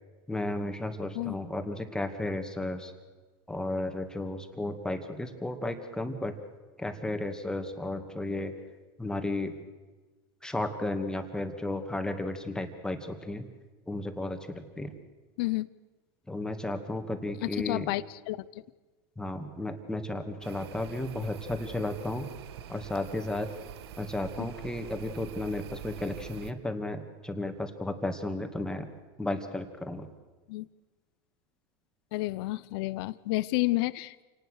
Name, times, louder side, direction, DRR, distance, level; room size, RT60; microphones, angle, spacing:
voice 1, 0.3-2.9 3.5-6.4 6.8-8.5 9.0-9.6 10.4-13.5 13.9-14.9 16.3-17.9 19.2-22.3 22.7-23.5 24.0-28.9 29.2-30.1, left 1 dB, 5° left, 6 dB, 2.4 m, -33 dB
voice 2, 15.4-15.7 17.4-18.5 30.5-30.7 32.1-34.2, left 20 dB, 70° left, 18 dB, 0.8 m, -30 dB
sound 1, 20.4-26.5, right 10 dB, 80° right, 1.5 m, -45 dB
28.0 x 19.0 x 6.6 m, 1.3 s
supercardioid pair, 120°, 13 cm